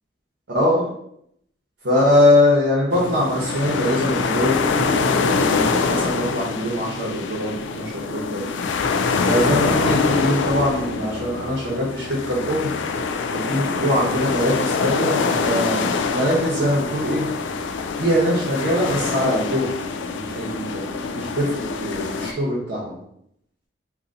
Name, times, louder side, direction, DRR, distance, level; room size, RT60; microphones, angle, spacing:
voice 1, 0.5-0.8 1.8-8.4 9.2-12.8 13.3-17.2 18.0-19.7 20.1-21.5 21.8-23.0, left 1 dB, 80° right, -4 dB, 0.9 m, -22 dB
sound 1, 2.9-22.3, left 4 dB, 85° left, 0.3 m, -24 dB
2.7 x 2.6 x 3.9 m, 0.73 s
head